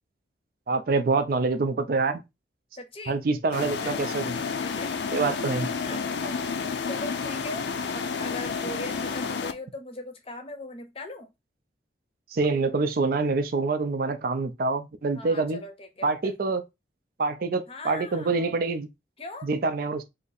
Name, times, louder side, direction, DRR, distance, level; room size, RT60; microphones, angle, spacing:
voice 1, 0.7-2.2 3.1-4.3 5.1-5.7 12.3-15.6 16.0-16.6 17.2-18.9 19.4-20.0, right 3 dB, 50° right, 0.4 m, -26 dB
voice 2, 2.8-3.2 3.7-3.9 4.6-4.9 5.8-11.3 15.1-16.5 17.7-18.6 19.2-19.5, left 2 dB, 30° left, 0.7 m, -40 dB
sound 1, 3.5-9.5, left 5 dB, 70° left, 0.4 m, -30 dB
2.8 x 2.5 x 4.0 m
head